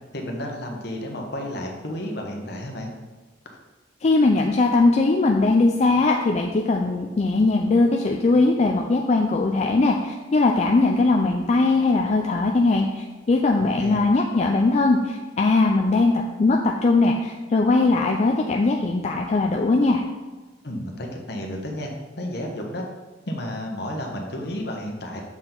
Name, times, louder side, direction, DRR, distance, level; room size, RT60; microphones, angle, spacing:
voice 1, 0.1-2.9 13.6-14.0 20.6-21.9 22.2-22.8 23.3-25.2, left 1 dB, 60° left, 1 dB, 1.1 m, -32 dB
voice 2, 4.0-20.0, left 3 dB, 35° left, 2 dB, 0.4 m, -20 dB
7.2 x 4.5 x 3.8 m, 1.2 s
head